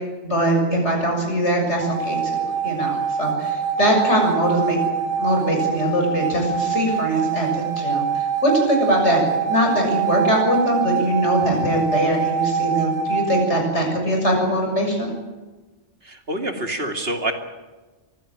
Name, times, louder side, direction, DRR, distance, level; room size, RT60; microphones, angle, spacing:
voice 1, 0.2-4.9 5.2-15.1, right 1 dB, 70° left, 2 dB, 7.1 m, -22 dB
sound 1, 1.8-13.5, right 7 dB, 75° right, 2.1 m, -24 dB
voice 2, 16.0-17.3, right 1 dB, 55° right, 4 dB, 2.8 m, -26 dB
24.0 x 16.5 x 8.9 m, 1.2 s
omnidirectional pair, 1.2 m